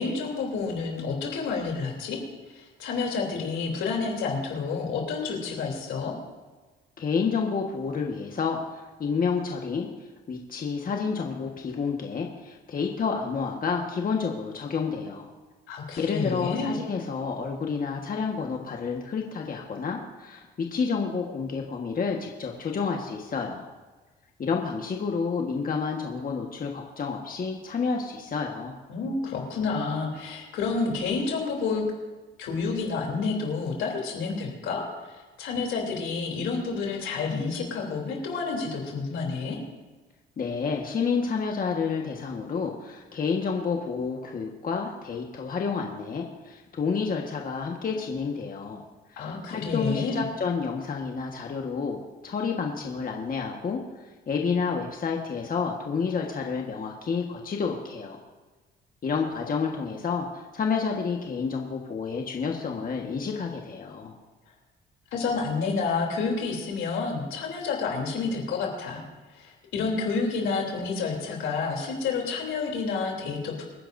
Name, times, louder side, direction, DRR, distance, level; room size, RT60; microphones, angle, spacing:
voice 1, 0.0-2.2 2.5-6.1 15.7-16.8 28.9-31.8 32.4-39.6 49.2-50.2 65.1-69.0 69.3-73.7, left 4 dB, 85° left, 0 dB, 3.3 m, -29 dB
voice 2, 7.0-9.9 10.3-15.3 16.0-23.7 24.4-28.7 40.4-48.8 49.2-53.8 54.3-58.2 59.0-64.1, left 5 dB, 45° left, 1 dB, 1.5 m, -29 dB
25.0 x 10.0 x 2.7 m, 1.3 s
cardioid pair, 90°, 20 cm